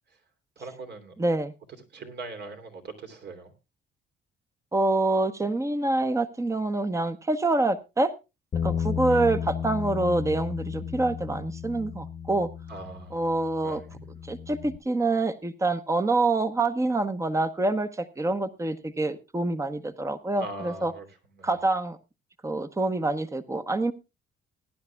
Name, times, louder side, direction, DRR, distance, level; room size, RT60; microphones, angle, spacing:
voice 1, 0.6-1.2 1.9-3.5 9.0-9.3 12.7-13.3 13.6-14.0 20.4-21.6, right 3 dB, 60° right, 5 dB, 3.0 m, -41 dB
voice 2, 1.2-1.5 4.7-8.1 8.6-12.5 13.1-13.8 14.2-20.9 21.4-22.0 22.4-23.9, right 2 dB, 15° right, 11 dB, 1.0 m, -26 dB
Bass guitar, 8.5-14.8, left 7 dB, 40° left, 1.0 m, -33 dB
20.5 x 11.0 x 2.3 m, 0.27 s
cardioid pair, 90°, 20 cm